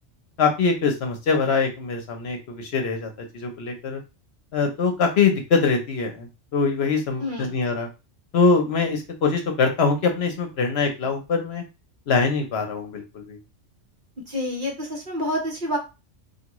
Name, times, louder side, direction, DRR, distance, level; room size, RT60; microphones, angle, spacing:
voice 1, 0.4-4.0 4.5-7.9 8.3-11.6 12.1-13.4, left 4 dB, 60° left, 4 dB, 0.9 m, -23 dB
voice 2, 7.2-7.5 14.3-15.8, left 1 dB, 45° right, 0 dB, 1.0 m, -28 dB
3.4 x 2.5 x 3.0 m, 0.28 s
omnidirectional pair, 1.2 m